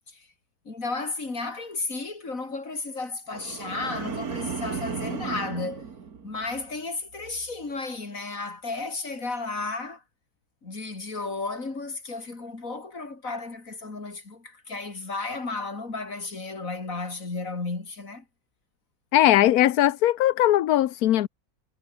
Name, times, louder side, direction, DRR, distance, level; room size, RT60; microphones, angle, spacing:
voice 1, 0.7-5.9 6.2-10.0 10.6-18.2, left 3 dB, 65° left, 4.1 m, -33 dB
sound 1, 3.3-6.7 7.1-7.5, right 6 dB, 85° right, 2.5 m, -35 dB
voice 2, 19.1-21.3, left 13 dB, 80° left, 1.2 m, -20 dB
omnidirectional pair, 1.5 m